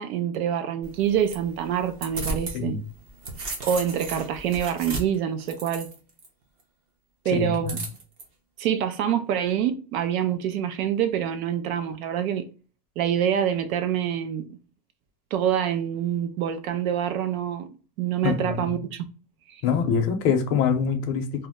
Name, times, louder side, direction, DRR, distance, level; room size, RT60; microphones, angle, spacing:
voice 1, 0.0-2.8 3.6-5.9 7.2-7.8 8.6-12.5 13.0-14.6 15.3-17.7 18.0-19.1 19.5-19.6, right 9 dB, 65° right, 0.6 m, -26 dB
sound 1, 0.8-2.6 3.0-6.3 7.7-8.2, right 2 dB, 30° right, 0.6 m, -35 dB
voice 2, 7.3-7.8 18.2-18.8 19.6-21.5, left 6 dB, 45° left, 0.6 m, -25 dB
2.8 x 2.0 x 3.4 m
supercardioid pair, 155°, 45 cm